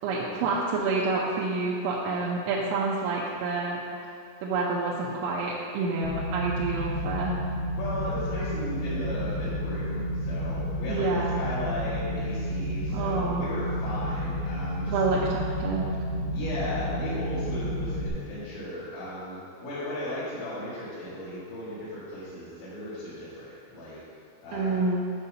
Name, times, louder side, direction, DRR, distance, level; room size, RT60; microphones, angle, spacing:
voice 1, 0.0-3.8 4.4-7.4 10.9-11.5 12.9-13.5 14.9-15.9 24.5-25.1, right 3 dB, 85° right, -5 dB, 3.0 m, -28 dB
sound 1, 6.0-18.1, equal, 85° left, 3.5 m, -31 dB
voice 2, 7.8-11.1 11.4-15.0 16.3-24.0 24.4-24.8, left 1 dB, 70° left, -13 dB, 4.0 m, -36 dB
9.4 x 6.5 x 2.8 m, 2.6 s
omnidirectional pair, 5.4 m